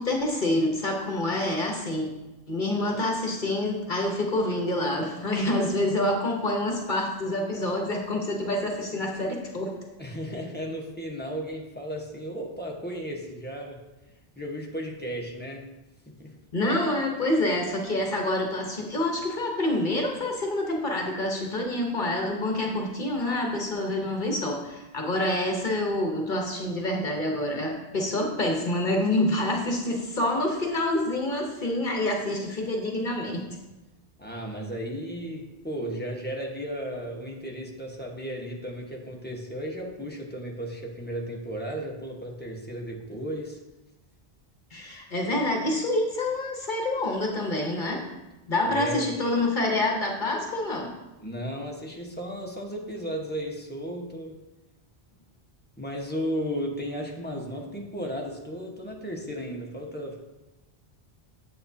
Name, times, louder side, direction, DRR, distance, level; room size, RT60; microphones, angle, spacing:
voice 1, 0.0-2.1 2.5-9.7 16.5-33.4 44.7-48.1 48.5-50.9, left 1 dB, 50° left, 1 dB, 1.1 m, -27 dB
voice 2, 10.0-13.8 14.4-15.6 16.2-16.3 34.2-43.6 48.6-49.0 51.2-54.4 55.8-60.2, equal, 10° left, -2 dB, 1.1 m, -34 dB
8.7 x 7.9 x 2.8 m, 1.0 s
omnidirectional pair, 1.0 m